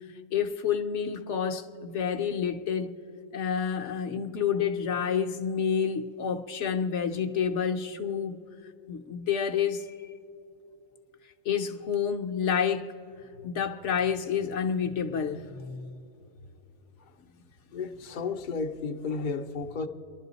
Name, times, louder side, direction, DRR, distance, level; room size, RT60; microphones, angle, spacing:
voice 1, 0.3-2.9 3.3-8.4 8.9-10.0 11.4-12.9 13.4-16.0, left 7 dB, 65° left, 1.0 m, -29 dB
voice 2, 17.7-19.9, left 4 dB, 45° left, 0.7 m, -33 dB
29.0 x 11.5 x 4.0 m
omnidirectional pair, 1.4 m